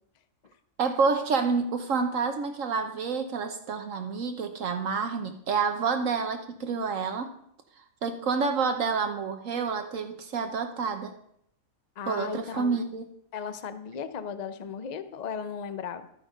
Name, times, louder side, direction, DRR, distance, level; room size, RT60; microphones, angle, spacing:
voice 1, 0.8-7.3 8.0-11.1 12.1-13.0, right 5 dB, 70° right, 6 dB, 1.2 m, -28 dB
voice 2, 12.0-12.8 13.3-16.1, left 7 dB, 40° left, 11 dB, 0.7 m, -36 dB
13.0 x 8.6 x 5.2 m, 0.72 s
omnidirectional pair, 1.4 m